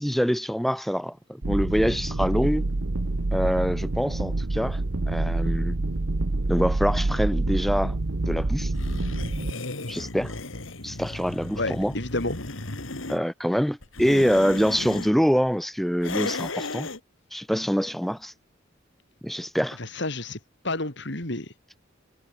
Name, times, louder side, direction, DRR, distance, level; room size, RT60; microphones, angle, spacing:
voice 1, 0.0-2.6 3.3-4.8 5.1-5.8 6.5-8.0 8.3-8.7 9.9-10.3 10.8-11.9 13.1-16.9 17.3-18.3 19.2-19.8, equal, ahead, 1.8 m, -25 dB
sound 1, 1.4-9.5, right 2 dB, 75° right, 1.1 m, -27 dB
sound 2, 8.7-13.2 13.8-15.1 16.0-17.0, left 2 dB, 85° left, 3.1 m, -35 dB
voice 2, 11.6-12.4 19.8-20.4 20.6-21.5, left 2 dB, 65° left, 4.7 m, -30 dB
head